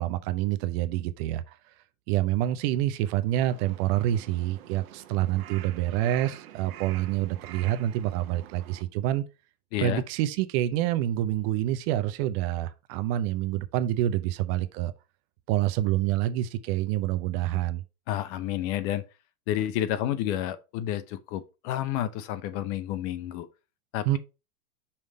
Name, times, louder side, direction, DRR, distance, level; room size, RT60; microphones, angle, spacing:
voice 1, 0.0-1.6 2.1-9.2 9.8-14.9 15.5-17.8 24.1-24.2, right 13 dB, 45° right, 0.6 m, -27 dB
Crow, 3.3-8.8, right 12 dB, 70° right, 1.0 m, -47 dB
voice 2, 9.7-10.0 18.1-19.0 19.5-23.5 23.9-24.2, left 12 dB, 45° left, 0.8 m, -30 dB
5.7 x 3.2 x 5.2 m
supercardioid pair, 135°, 45 cm